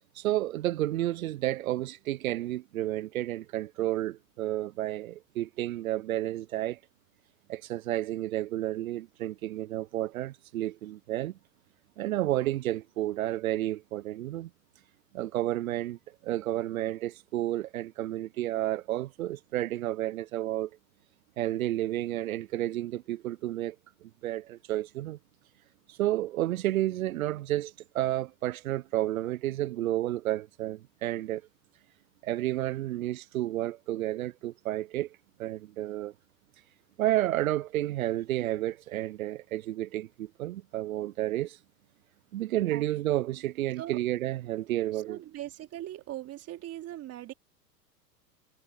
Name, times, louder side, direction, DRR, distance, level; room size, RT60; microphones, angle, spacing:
voice 1, 0.2-6.8 7.5-11.4 12.0-14.5 15.1-20.7 21.4-23.8 24.0-25.2 25.9-31.4 32.2-36.1 37.0-41.6 42.3-45.2, right 14 dB, 55° right, 1.1 m, -31 dB
voice 2, 45.1-47.3, right 13 dB, 30° right, 3.7 m, -40 dB
figure-of-eight pair, 95°, 49 cm